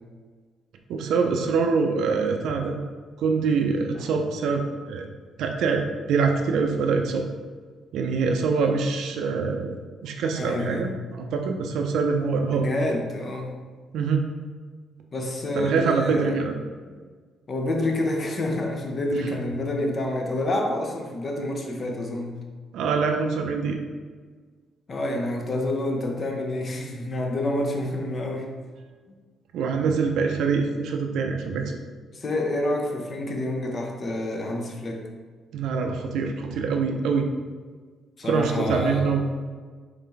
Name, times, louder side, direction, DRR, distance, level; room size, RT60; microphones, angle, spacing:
voice 1, 0.9-2.8 3.2-5.0 5.4-5.8 6.1-7.2 7.9-9.8 10.0-12.6 13.9-14.2 15.6-16.6 19.1-19.2 22.7-23.8 29.5-31.7 35.5-37.3 38.2-39.2, right 5 dB, 80° right, 3 dB, 0.4 m, -24 dB
voice 2, 10.4-10.9 12.5-13.5 15.1-16.4 16.9-17.0 17.5-22.4 24.9-28.5 32.1-35.0 38.2-39.1, left 1 dB, 40° left, 1 dB, 0.7 m, -28 dB
3.9 x 3.3 x 3.3 m, 1.5 s
cardioid pair, 90°, 0 cm